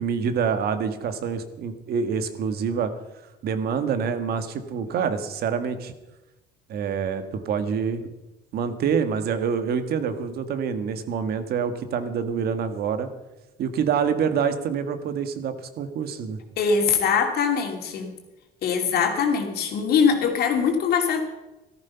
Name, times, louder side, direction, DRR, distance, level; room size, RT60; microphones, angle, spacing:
voice 1, 0.0-2.9 3.4-5.9 6.7-8.0 8.5-13.1 13.6-16.4, right 6 dB, 65° right, 9 dB, 1.6 m, -26 dB
voice 2, 16.6-18.1 18.6-21.2, left 6 dB, 70° left, 4 dB, 2.9 m, -22 dB
14.0 x 13.5 x 5.8 m, 1.0 s
cardioid pair, 110°, 17 cm